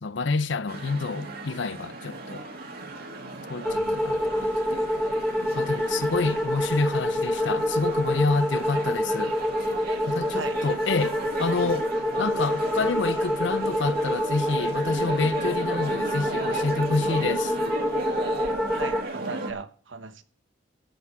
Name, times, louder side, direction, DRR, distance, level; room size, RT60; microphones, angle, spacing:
voice 1, 0.0-2.4 3.5-4.9 5.5-9.4 10.1-11.9 12.2-17.6, left 3 dB, 65° left, 0.7 m, -28 dB
sound 1, 0.7-19.5, right 2 dB, 50° right, 2.1 m, -35 dB
sound 2, 3.6-19.0, left 1 dB, ahead, 1.1 m, -27 dB
voice 2, 3.6-4.0 10.3-10.6 18.7-20.2, right 4 dB, 70° right, 1.1 m, -37 dB
13.5 x 5.9 x 7.9 m
head